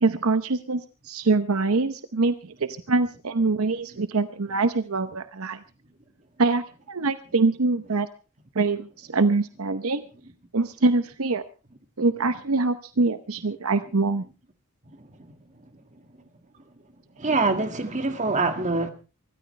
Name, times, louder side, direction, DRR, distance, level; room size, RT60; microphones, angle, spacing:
voice 1, 0.0-5.6 6.4-8.1 8.5-10.0 10.5-11.4 12.0-14.2, right 3 dB, 70° right, 11 dB, 0.8 m, -24 dB
voice 2, 17.2-18.9, right 3 dB, 35° right, 7 dB, 2.0 m, -24 dB
25.0 x 13.5 x 3.3 m, 0.33 s
head